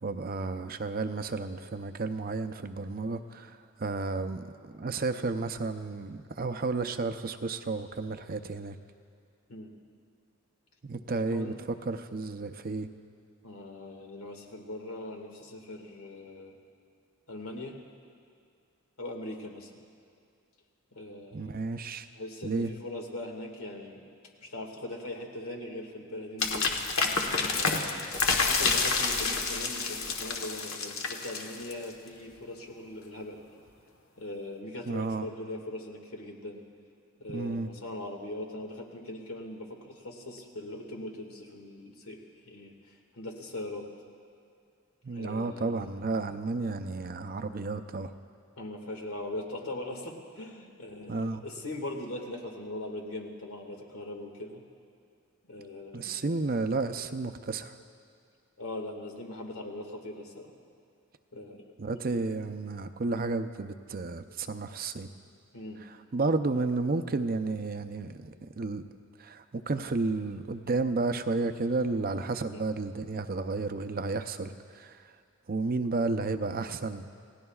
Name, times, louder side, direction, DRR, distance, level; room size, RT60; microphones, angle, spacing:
voice 1, 0.0-8.8 10.8-11.5 11.9-12.9 21.3-22.1 22.4-22.7 34.9-35.3 37.3-37.7 45.0-48.1 51.1-51.4 55.9-57.8 61.8-65.1 66.1-68.8 69.2-75.0 75.5-77.1, right 3 dB, 45° right, 9 dB, 0.5 m, -32 dB
voice 2, 11.1-11.5 13.4-16.6 17.3-17.8 19.0-19.8 20.9-21.6 22.1-24.1 24.4-26.7 27.5-33.4 34.2-36.6 37.2-43.9 45.1-45.9 48.6-54.6 55.5-56.2 58.6-60.5 61.3-61.7 65.5-65.9 72.5-72.6, left 1 dB, 80° left, 2 dB, 2.0 m, -40 dB
sound 1, 26.4-31.9, left 4 dB, 65° left, 1.3 m, -28 dB
29.5 x 17.0 x 2.4 m, 2.3 s
head